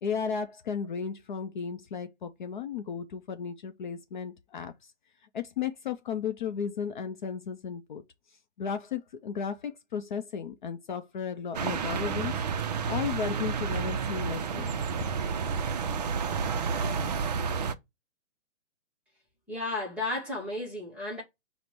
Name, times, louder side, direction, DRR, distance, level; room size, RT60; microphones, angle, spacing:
voice 1, 0.0-4.7 5.3-8.0 8.6-12.4 12.9-14.8, left 7 dB, 45° left, 0.5 m, -34 dB
sound 1, 11.5-17.7, right 6 dB, 40° right, 0.4 m, -30 dB
voice 2, 19.5-21.2, left 2 dB, 5° right, 0.7 m, -33 dB
5.1 x 2.1 x 4.3 m
hypercardioid pair, 160°, 35 cm